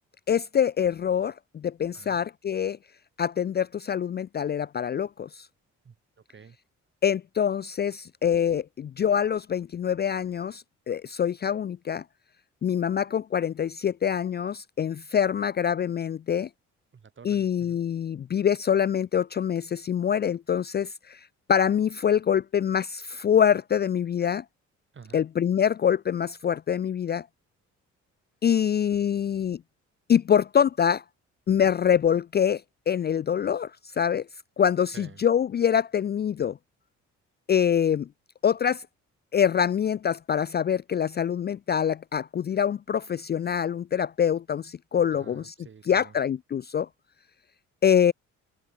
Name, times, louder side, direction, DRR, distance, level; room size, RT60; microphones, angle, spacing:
voice 1, 0.3-2.8 3.2-5.5 7.0-12.0 12.6-16.5 17.2-24.4 25.1-27.3 28.4-29.6 30.1-31.0 31.5-34.3 34.6-36.6 37.5-38.1 38.4-38.9 39.3-45.5 45.9-46.9 47.8-48.1, left 8 dB, 35° left, 0.4 m, -25 dB
voice 2, 5.8-6.6 16.9-17.8 24.9-25.3 34.9-35.2 45.1-46.2, right 6 dB, 40° right, 4.9 m, -50 dB
cardioid pair, 90°, 30 cm